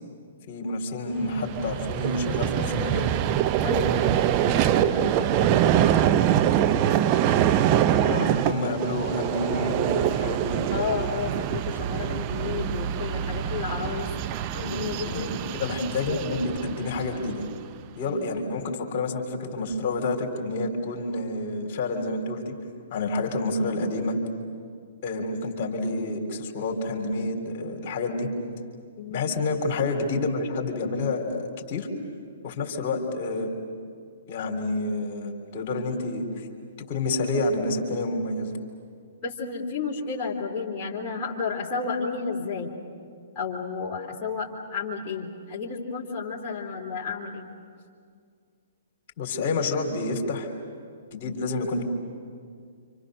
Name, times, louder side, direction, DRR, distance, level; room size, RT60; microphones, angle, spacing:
voice 1, 0.5-3.1 8.0-10.7 14.5-14.8 15.0-17.5 18.0-22.6 22.9-24.2 25.0-28.3 29.1-31.9 32.4-33.5 34.3-36.5 36.9-38.6 49.2-50.5 51.1-51.8, left 2 dB, 45° left, 2 dB, 3.7 m, -29 dB
Vehicle, 1.2-17.6, right 10 dB, 35° right, 0.8 m, -24 dB
voice 2, 3.6-5.8 10.7-14.1 14.6-15.3 18.0-18.3 29.0-29.2 39.2-42.7 43.3-47.5 51.2-51.3, left 5 dB, 30° left, -6 dB, 3.3 m, -32 dB
29.0 x 26.5 x 6.5 m, 2.2 s
figure-of-eight pair, 125°, 0 cm